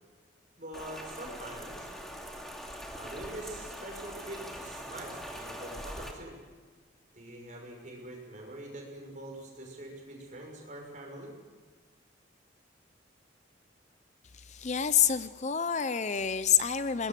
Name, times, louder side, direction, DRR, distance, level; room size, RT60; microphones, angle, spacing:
voice 1, 0.6-1.9 3.0-6.3 7.1-11.3, right 1 dB, 40° right, 1 dB, 6.3 m, -44 dB
Rain, 0.7-6.1, equal, ahead, 2.6 m, -42 dB
voice 2, 14.5-17.1, left 8 dB, 35° left, 13 dB, 0.6 m, -27 dB
23.0 x 20.0 x 7.7 m, 1.4 s
head